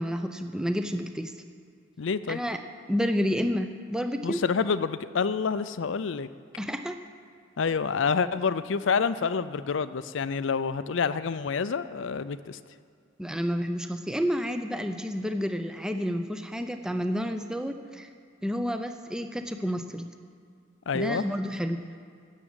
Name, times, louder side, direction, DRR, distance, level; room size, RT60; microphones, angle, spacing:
voice 1, 0.0-1.3 2.3-2.6 2.9-4.4 6.6-7.0 13.2-18.1 18.4-20.1 20.9-21.8, equal, 5° right, 7 dB, 0.6 m, -30 dB
voice 2, 2.0-2.4 4.2-6.3 7.6-12.6 20.9-21.2, left 5 dB, 70° left, 14 dB, 0.5 m, -28 dB
13.5 x 7.3 x 9.0 m, 2.3 s
head